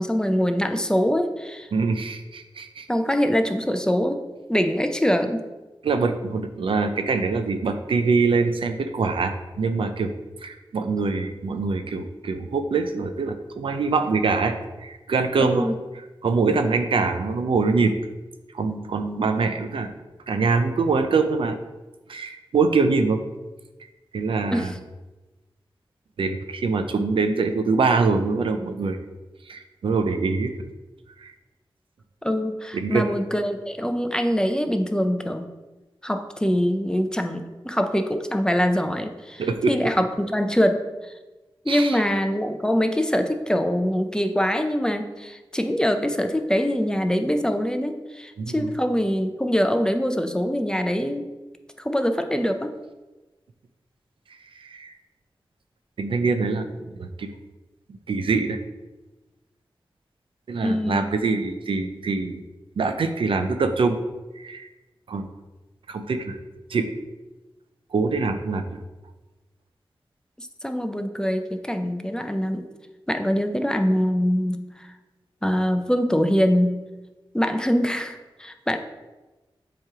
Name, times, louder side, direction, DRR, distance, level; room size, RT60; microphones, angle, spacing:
voice 1, 0.0-1.7 2.9-4.2 4.5-5.4 15.4-15.7 24.5-24.7 32.2-35.5 36.0-41.1 41.6-51.2 51.8-52.7 60.6-61.2 70.4-72.6 73.1-74.9 75.4-76.8 77.3-78.8, equal, 10° left, 7 dB, 0.5 m, -24 dB
voice 2, 1.7-2.9 5.8-10.1 10.4-18.0 18.5-19.9 20.3-21.6 22.1-23.2 24.1-24.7 26.2-29.0 29.5-30.5 31.2-31.3 32.7-33.1 39.4-39.7 41.7-42.0 48.4-48.7 54.5-54.9 56.0-57.3 58.1-58.6 60.5-62.4 62.8-64.0 64.4-64.7 65.1-65.3 65.9-66.4 66.7-66.9 67.9-68.7, right 4 dB, 80° right, 8 dB, 0.5 m, -24 dB
7.4 x 3.1 x 4.8 m, 1.1 s
wide cardioid pair, 65°, 9 cm